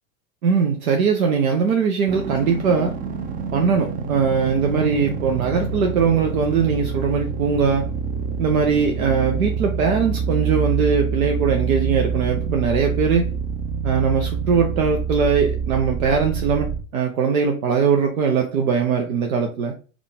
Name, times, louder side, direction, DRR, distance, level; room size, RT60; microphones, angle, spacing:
voice 1, 0.4-2.9 3.5-7.9 8.4-13.3 13.8-19.7, right 6 dB, 75° right, 2 dB, 0.7 m, -20 dB
sound 1, 2.1-16.8, right 5 dB, 20° right, 0.4 m, -26 dB
3.7 x 2.4 x 3.6 m, 0.36 s
hypercardioid pair, 85°, 42 cm